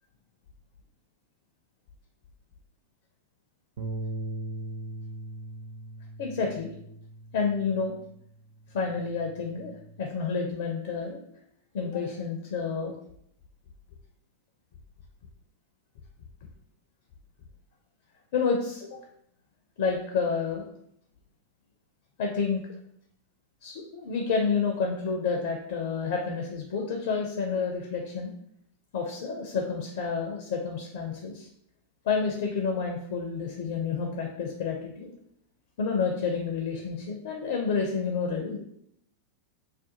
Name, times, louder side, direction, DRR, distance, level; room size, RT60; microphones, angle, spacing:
Bass guitar, 3.8-8.2 8.6-10.0, right 1 dB, 55° right, 0.4 m, -40 dB
voice 1, 6.2-6.7 7.3-7.9 8.7-11.2 11.7-12.9 18.3-19.0 19.8-20.6 22.2-22.6 23.6-28.3 28.9-31.5 32.0-35.1 35.8-38.6, left 5 dB, 55° left, 2 dB, 0.4 m, -29 dB
2.4 x 2.1 x 2.7 m, 0.71 s
figure-of-eight pair, 90°, 0 cm